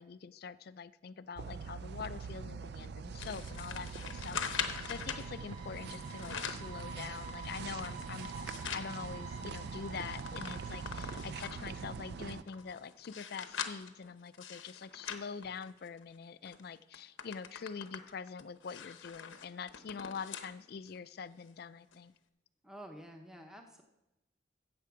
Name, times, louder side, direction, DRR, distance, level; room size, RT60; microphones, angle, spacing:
voice 1, 0.0-8.3 8.7-22.1, left 6 dB, 55° left, 15 dB, 0.4 m, -45 dB
sound 1, 1.4-12.4, right 5 dB, 55° right, 0.4 m, -43 dB
sound 2, 2.9-12.9, right 4 dB, 40° right, 5.0 m, -51 dB
sound 3, 3.2-5.3 6.0-6.7 7.2-8.9 9.4-9.5 9.7-11.7 12.3-16.0 16.5-16.6 16.9-20.5 21.0-21.1 21.9-22.0, left 7 dB, 85° left, 0.9 m, -42 dB
voice 2, 22.6-23.8, right 1 dB, 5° right, 3 dB, 0.7 m, -50 dB
15.0 x 6.8 x 4.7 m, 0.95 s
head